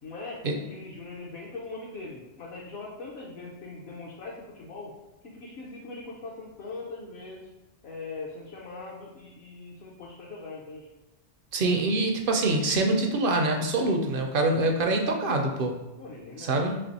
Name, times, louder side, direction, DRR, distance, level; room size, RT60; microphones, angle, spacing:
voice 1, 0.0-4.9 5.2-7.5 7.8-10.9 16.0-16.7, left 3 dB, 65° left, -3 dB, 0.9 m, -41 dB
voice 2, 11.5-15.8 16.4-16.8, right 2 dB, 60° right, 3 dB, 0.6 m, -25 dB
3.3 x 3.1 x 4.0 m, 0.97 s
omnidirectional pair, 1.2 m